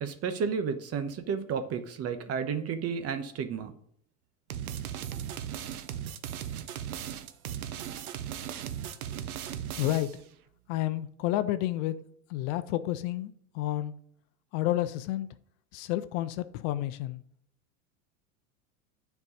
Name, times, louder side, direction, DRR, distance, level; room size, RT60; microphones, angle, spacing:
voice 1, 0.0-3.7, right 6 dB, 35° right, 1.2 m, -32 dB
sound 1, 4.5-10.2, right 10 dB, 90° right, 0.9 m, -37 dB
voice 2, 9.8-10.1 10.7-12.0 12.3-13.9 14.5-15.3 15.7-17.2, left 14 dB, 55° left, 0.7 m, -30 dB
9.6 x 4.7 x 5.3 m
hypercardioid pair, 105°, 42 cm